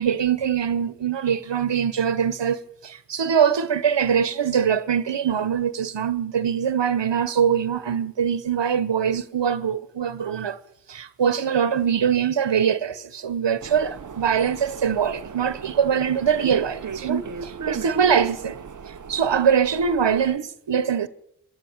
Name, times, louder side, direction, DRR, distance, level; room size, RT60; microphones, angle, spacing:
voice 1, 0.0-10.6 10.9-18.6 18.8-21.1, right 7 dB, 80° right, 1.2 m, -23 dB
sound 1, 13.6-20.4, right 7 dB, 45° right, 0.8 m, -36 dB
25.5 x 11.5 x 9.0 m
wide cardioid pair, 115°, 43 cm